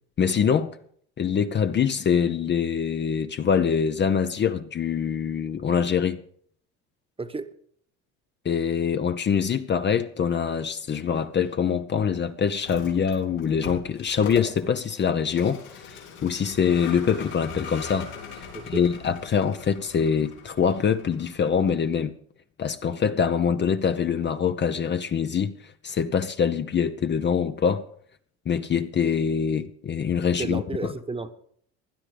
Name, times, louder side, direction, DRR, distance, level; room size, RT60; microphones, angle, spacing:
voice 1, 0.2-0.8 1.2-6.2 8.4-18.1 18.4-22.1 22.6-27.8 28.5-30.9, left 7 dB, 35° left, 0.8 m, -24 dB
Vehicle, 12.6-21.9, left 5 dB, 90° left, 4.1 m, -41 dB
voice 2, 30.4-31.3, right 3 dB, 15° right, 1.2 m, -32 dB
16.5 x 11.0 x 5.1 m
supercardioid pair, 80°, 33 cm